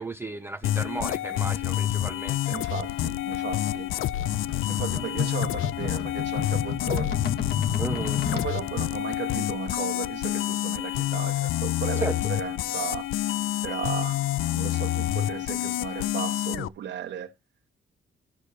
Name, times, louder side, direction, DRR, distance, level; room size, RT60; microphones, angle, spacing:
voice 1, 0.0-2.6 7.8-8.2 12.0-12.2, right 3 dB, 10° right, 0.4 m, -34 dB
sound 1, 0.6-16.7, left 13 dB, 75° left, 0.4 m, -28 dB
voice 2, 2.5-3.9 4.7-7.2 8.3-13.1 13.6-17.3, right 9 dB, 60° right, 1.2 m, -36 dB
sound 2, 2.9-8.5, left 6 dB, 50° left, 1.3 m, -33 dB
11.5 x 6.5 x 2.7 m
cardioid pair, 170°, 21 cm